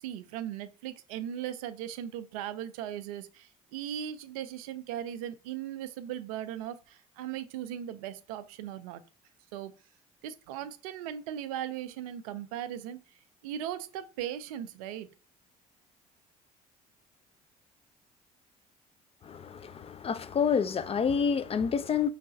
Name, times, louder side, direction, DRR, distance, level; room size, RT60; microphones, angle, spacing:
voice 1, 0.0-9.0 9.5-9.7 10.2-13.0 13.4-15.1, right 10 dB, 75° right, 0.5 m, -38 dB
voice 2, 19.2-22.1, left 6 dB, 30° left, 0.5 m, -28 dB
5.3 x 3.2 x 2.6 m
hypercardioid pair, 55°, 19 cm